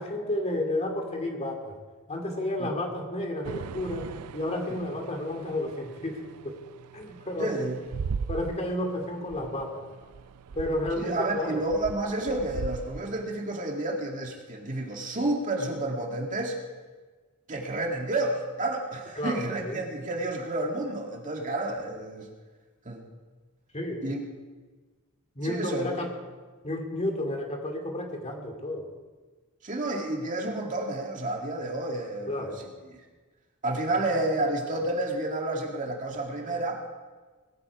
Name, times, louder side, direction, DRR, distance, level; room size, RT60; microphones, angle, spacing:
voice 1, 0.0-1.7 2.1-4.1 4.3-6.5 6.9-7.5 8.3-9.8 10.5-11.6 19.2-19.8 23.7-24.2 25.4-26.1 26.6-28.8 32.3-32.6, left 1 dB, 30° left, 3 dB, 2.6 m, -31 dB
sound 1, 3.4-13.3, right 5 dB, 85° right, 0.4 m, -40 dB
voice 2, 7.4-7.8 11.0-16.6 17.5-22.3 22.9-23.0 24.0-24.2 25.4-26.0 29.6-32.9 33.6-36.8, right 2 dB, 35° right, 1 dB, 2.2 m, -30 dB
20.0 x 13.5 x 4.8 m, 1.3 s
head